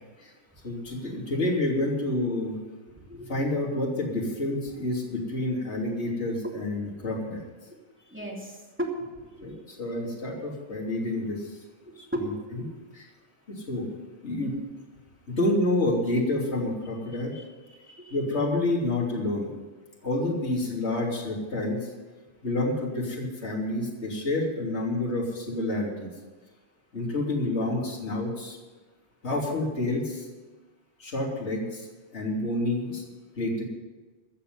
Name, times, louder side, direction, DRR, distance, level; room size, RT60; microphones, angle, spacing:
voice 1, 0.6-2.6 3.3-7.4 9.4-11.6 12.2-12.6 12.9-13.1 13.5-13.9 14.2-14.5 15.3-17.3 18.1-19.5 20.0-21.9 22.4-26.1 26.9-28.6 29.2-30.3 31.0-31.9 32.1-33.0 33.4-33.6, left 2 dB, 20° left, -2 dB, 2.9 m, -28 dB
voice 2, 3.1-3.4 7.0-7.1 8.1-9.5 12.1-12.7 17.3-17.4 17.8-18.2, right 1 dB, 5° right, -3 dB, 1.8 m, -35 dB
16.0 x 6.8 x 9.7 m, 1.3 s
omnidirectional pair, 3.8 m